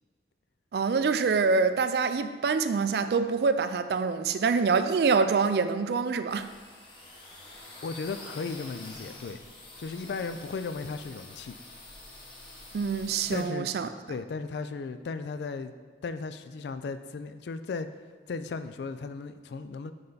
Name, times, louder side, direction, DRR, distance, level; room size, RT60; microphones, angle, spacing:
voice 1, 0.7-6.5 12.7-13.9, right 5 dB, 60° right, 0.3 m, -25 dB
sound 1, 6.3-13.4, left 2 dB, 30° left, 0.9 m, -47 dB
voice 2, 7.8-9.4 9.8-11.6 13.3-13.7 14.1-15.7 16.0-17.9 18.3-19.9, left 4 dB, 70° left, 0.3 m, -36 dB
5.6 x 5.3 x 3.9 m
head